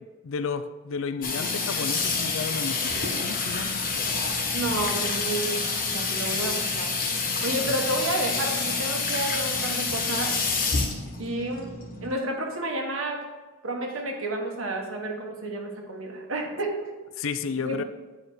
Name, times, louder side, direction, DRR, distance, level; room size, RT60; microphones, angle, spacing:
voice 1, 0.2-4.3 17.2-17.8, left 5 dB, 80° left, 11 dB, 0.5 m, -32 dB
Water tap faucet / Sink (filling or washing), 1.2-12.1, left 4 dB, 45° left, 1.3 m, -28 dB
voice 2, 4.5-6.9 7.3-10.4 11.2-13.2 13.6-16.9 17.6-17.8, right 1 dB, 90° right, 2 dB, 1.5 m, -31 dB
9.0 x 4.8 x 4.7 m, 1.2 s
head